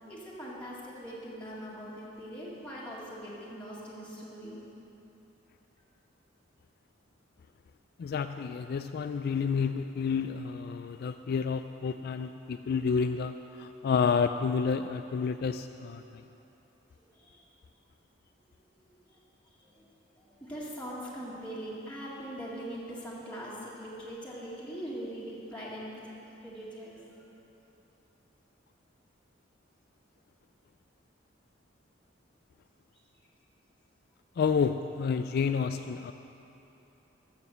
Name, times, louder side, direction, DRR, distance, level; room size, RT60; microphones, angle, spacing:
voice 1, 0.0-4.6 17.1-17.4 19.1-19.2 19.6-26.1 26.4-27.0, equal, 5° left, -8 dB, 1.9 m, -42 dB
voice 2, 8.0-16.2 34.4-36.1, left 6 dB, 55° left, 9 dB, 0.3 m, -30 dB
13.5 x 7.4 x 6.8 m, 3.0 s
head